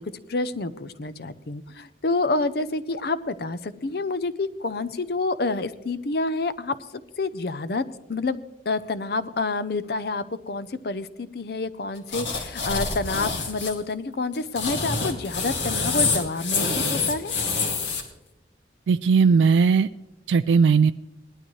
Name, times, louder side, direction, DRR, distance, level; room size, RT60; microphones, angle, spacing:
voice 1, 0.3-6.8 7.2-7.8 8.1-8.4 8.7-17.3, left 3 dB, 55° left, 14 dB, 0.6 m, -28 dB
sound 1, 12.1-13.7 14.3-18.0, left 4 dB, 90° left, 2.3 m, -26 dB
voice 2, 18.9-19.9 20.3-20.9, right 5 dB, 80° right, 11 dB, 0.3 m, -18 dB
19.0 x 12.0 x 3.1 m, 0.94 s
head